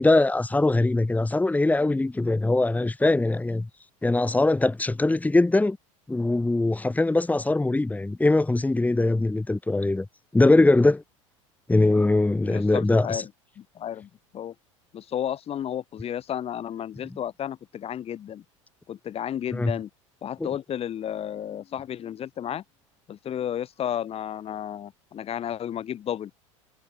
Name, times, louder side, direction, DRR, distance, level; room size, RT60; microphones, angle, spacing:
voice 1, 0.0-3.7 4.0-5.8 6.1-10.0 10.3-11.0 11.7-13.2 19.5-19.7 20.4-20.5, left 2 dB, 10° left, 3.1 m, -21 dB
voice 2, 12.4-13.3 13.6-14.5 14.9-18.4 18.9-19.9 20.2-22.6 23.1-26.3, left 10 dB, 35° left, 5.0 m, -32 dB
figure-of-eight pair, 70°, 17 cm